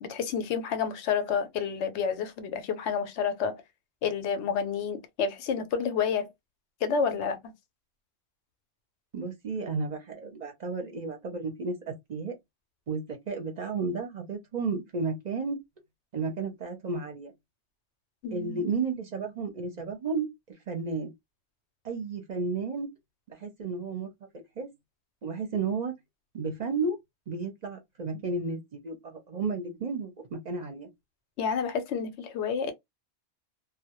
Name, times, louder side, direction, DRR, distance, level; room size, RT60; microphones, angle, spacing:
voice 1, 0.0-3.6 4.0-6.3 6.8-7.5 18.2-18.6 31.4-32.7, left 6 dB, 90° left, 0.9 m, -29 dB
voice 2, 9.1-12.3 12.9-15.6 16.1-17.3 18.3-20.3 20.7-21.1 21.8-22.9 23.3-24.1 24.3-24.7 25.2-25.9 26.3-27.0 27.3-30.9, right 4 dB, 50° right, 0.5 m, -32 dB
2.1 x 2.0 x 2.8 m
omnidirectional pair, 1.1 m